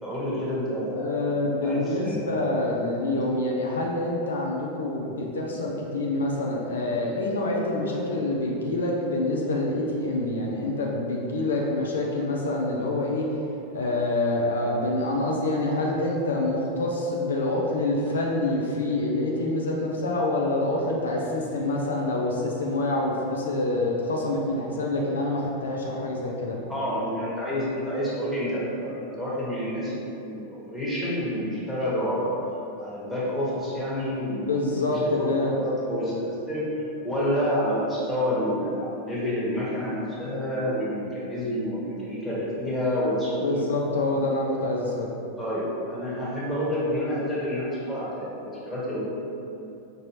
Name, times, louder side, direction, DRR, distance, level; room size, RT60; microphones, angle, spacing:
voice 1, 0.0-1.3 1.6-2.6 26.7-32.3 32.8-34.6 35.2-35.3 35.6-36.7 37.0-43.6 45.4-49.0, equal, 5° left, -9 dB, 1.2 m, -29 dB
voice 2, 1.0-13.3 13.7-26.6 34.5-35.6 43.4-45.1, left 2 dB, 65° left, -2 dB, 0.4 m, -26 dB
5.2 x 2.7 x 3.0 m, 2.9 s
figure-of-eight pair, 90°, 0 cm